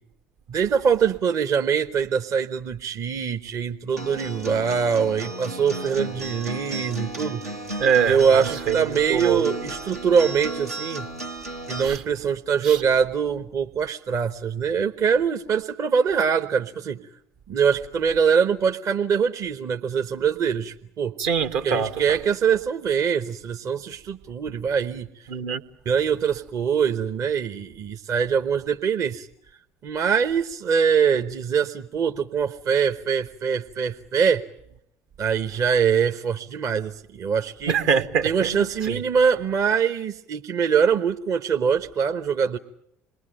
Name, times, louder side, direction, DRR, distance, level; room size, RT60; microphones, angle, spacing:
voice 1, 0.5-7.4 8.0-11.1 11.7-17.0 17.5-21.1 21.6-25.1 25.8-29.3 29.8-34.4 35.2-37.8 38.2-42.6, right 6 dB, 45° right, 1.0 m, -23 dB
Acoustic guitar, 4.0-12.0, right 2 dB, 85° right, 1.7 m, -34 dB
voice 2, 7.8-9.4 11.8-12.0 12.6-12.8 21.2-21.9 25.3-25.6 37.7-39.0, right 7 dB, 60° right, 1.4 m, -24 dB
27.5 x 21.0 x 9.0 m
figure-of-eight pair, 60°, 8 cm